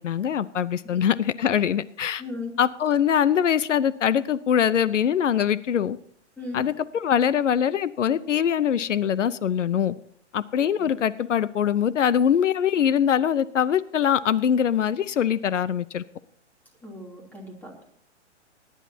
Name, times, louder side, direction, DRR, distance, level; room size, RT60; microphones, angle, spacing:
voice 1, 0.0-2.2 2.6-6.0 6.5-10.0 10.3-16.0, left 9 dB, 90° left, 0.8 m, -23 dB
voice 2, 2.2-2.5 6.4-6.7 10.8-10.9 16.8-17.8, left 3 dB, 5° left, 3.0 m, -37 dB
20.5 x 11.0 x 2.8 m
hypercardioid pair, 140°, 36 cm